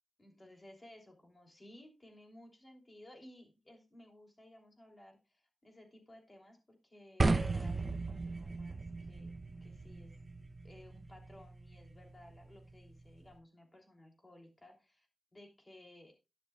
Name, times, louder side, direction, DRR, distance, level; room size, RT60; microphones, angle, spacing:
voice 1, 0.2-10.1 10.6-15.1 15.3-16.1, left 1 dB, 20° left, 1 dB, 3.2 m, -58 dB
sound 1, 7.2-13.3, right 3 dB, 30° right, 0.8 m, -37 dB
11.5 x 11.0 x 2.4 m, 0.27 s
wide cardioid pair, 150°, 0 cm